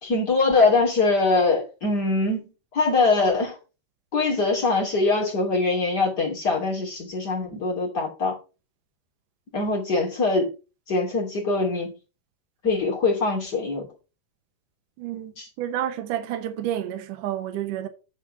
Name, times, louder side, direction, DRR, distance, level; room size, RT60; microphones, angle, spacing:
voice 1, 0.0-3.6 4.1-8.4 9.5-10.5 10.9-11.9 12.6-13.9 15.4-15.5, left 3 dB, 30° left, 2.8 m, -23 dB
voice 2, 15.0-15.3 15.6-17.9, right 11 dB, 65° right, 2.3 m, -29 dB
9.9 x 4.4 x 5.7 m
omnidirectional pair, 4.6 m